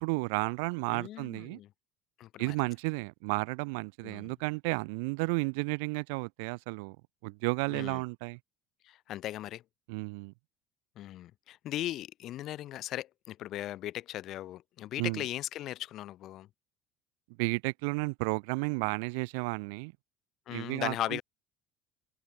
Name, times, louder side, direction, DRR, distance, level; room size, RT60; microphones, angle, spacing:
voice 1, 0.0-1.6 2.4-7.0 7.2-8.4 9.9-10.3 15.0-15.2 17.4-19.9 20.5-21.2, right 31 dB, 85° right, 0.7 m, -32 dB
voice 2, 0.9-1.7 2.2-2.6 4.0-4.3 7.7-8.0 8.8-9.6 11.0-16.5 20.5-21.2, left 13 dB, 50° left, 0.8 m, -38 dB
cardioid pair, 130°, 0 cm